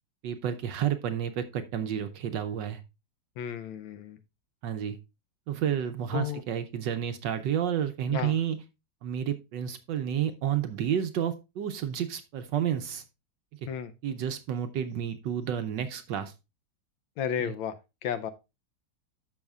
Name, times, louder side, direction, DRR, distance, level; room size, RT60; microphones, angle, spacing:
voice 1, 0.2-2.8 4.6-5.0 5.5-8.6 9.0-13.0 14.0-16.3 17.4-17.5, right 9 dB, 70° right, 1.2 m, -30 dB
voice 2, 3.4-4.2 6.1-6.4 8.1-8.3 13.7-13.9 17.2-17.8 18.0-18.3, left 8 dB, 75° left, 1.3 m, -32 dB
13.5 x 5.6 x 2.3 m
omnidirectional pair, 2.3 m